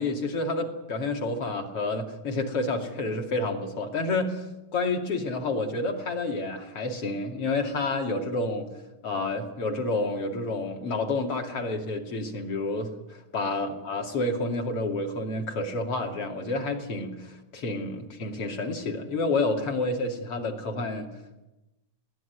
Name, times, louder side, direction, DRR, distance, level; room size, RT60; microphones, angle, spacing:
voice 1, 0.0-4.4 4.7-8.7 9.0-21.1, left 2 dB, 45° left, 3 dB, 3.1 m, -29 dB
22.0 x 17.0 x 9.5 m, 1.0 s
omnidirectional pair, 4.0 m